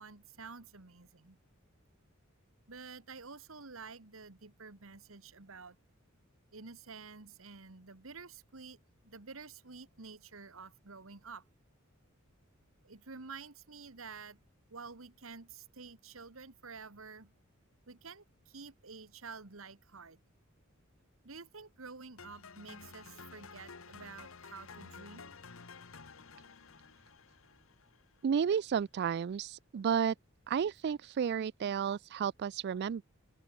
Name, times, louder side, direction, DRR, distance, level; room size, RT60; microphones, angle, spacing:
voice 1, 0.0-1.4 2.7-5.8 6.5-11.4 12.8-14.4 14.7-17.3 17.9-20.2 21.2-25.3, right 4 dB, 75° right, 1.8 m, -50 dB
sound 1, 22.2-28.3, left 5 dB, 75° left, 1.3 m, -52 dB
voice 2, 28.2-30.1 30.5-33.0, right 7 dB, 55° right, 0.3 m, -32 dB
head